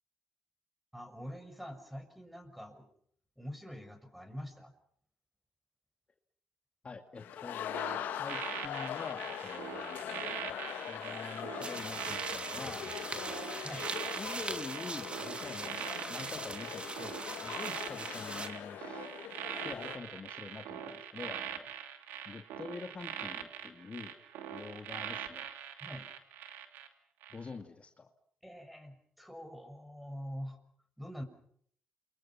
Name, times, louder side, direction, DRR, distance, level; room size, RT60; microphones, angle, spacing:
voice 1, 0.9-2.9 3.4-4.7 13.6-13.9 25.8-26.1 28.4-30.6 31.0-31.2, equal, ahead, 8 dB, 6.3 m, -45 dB
voice 2, 6.8-10.5 10.9-12.9 14.2-15.8 16.1-19.1 19.6-21.7 22.3-24.1 24.5-25.5 27.3-28.1, left 4 dB, 40° left, 5 dB, 2.2 m, -46 dB
sound 1, 7.2-20.0, left 10 dB, 80° left, 1.9 m, -42 dB
sound 2, 7.7-26.9 27.2-27.5, right 9 dB, 85° right, 2.6 m, -43 dB
sound 3, 11.6-18.5, right 3 dB, 35° right, 3.0 m, -41 dB
28.5 x 24.5 x 5.9 m, 0.63 s
supercardioid pair, 55°, 3 cm